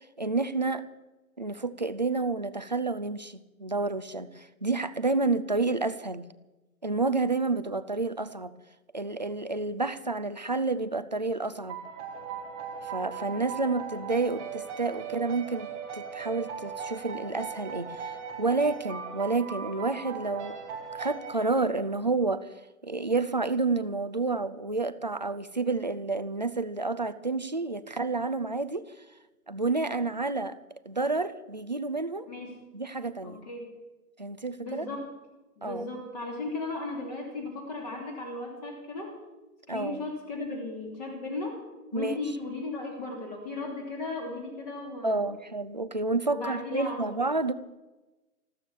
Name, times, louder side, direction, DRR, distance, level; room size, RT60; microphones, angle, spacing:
voice 1, 0.2-0.8 1.4-6.2 6.8-8.6 8.9-11.8 12.8-20.6 20.9-22.5 22.8-28.9 29.5-30.6 30.9-32.3 32.7-33.4 34.2-34.9 35.6-35.9 39.7-40.0 41.9-42.2 45.0-47.5, right 3 dB, 30° right, 12 dB, 0.4 m, -29 dB
sound 1, 11.7-22.1, right 6 dB, 5° right, 0.8 m, -39 dB
voice 2, 32.3-32.6 33.2-33.7 34.6-35.1 35.6-39.1 39.7-41.6 41.9-45.3 46.2-47.1, left 2 dB, 25° left, 0 dB, 3.1 m, -36 dB
14.5 x 13.0 x 7.3 m, 1.1 s
hypercardioid pair, 170°, 45 cm